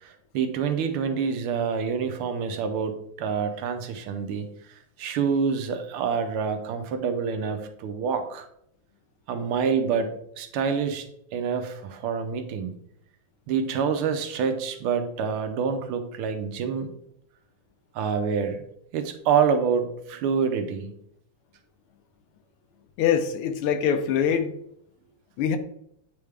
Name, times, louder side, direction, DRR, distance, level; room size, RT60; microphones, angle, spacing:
voice 1, 0.0-8.5 9.3-11.1 11.3-12.7 13.5-16.9 17.9-18.6 18.9-20.9, right 6 dB, 85° right, 1.6 m, -27 dB
voice 2, 23.0-24.5 25.4-25.6, left 8 dB, 85° left, 1.6 m, -23 dB
8.6 x 3.5 x 3.3 m
omnidirectional pair, 2.4 m